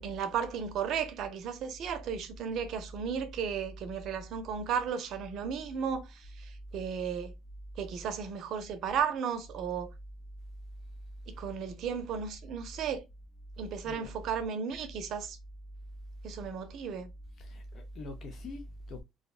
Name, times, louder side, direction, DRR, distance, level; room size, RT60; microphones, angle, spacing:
voice 1, 0.0-7.3 7.8-9.9 11.4-13.0 13.6-15.4 16.2-17.1, right 7 dB, 60° right, 0.6 m, -34 dB
voice 2, 17.4-19.0, left 2 dB, 50° left, 0.5 m, -43 dB
2.6 x 2.1 x 2.3 m
cardioid pair, 125°, 0 cm